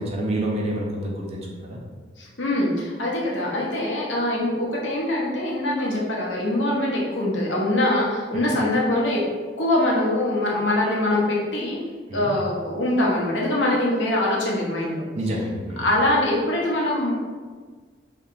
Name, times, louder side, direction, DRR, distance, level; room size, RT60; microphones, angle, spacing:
voice 1, 0.0-1.8 8.3-8.6 12.1-12.4 15.2-15.8, right 1 dB, 35° right, -2 dB, 0.4 m, -28 dB
voice 2, 2.2-9.2 9.6-11.8 12.1-15.0 15.8-17.1, left 1 dB, 85° left, -4 dB, 0.7 m, -23 dB
2.7 x 2.2 x 2.5 m, 1.5 s
head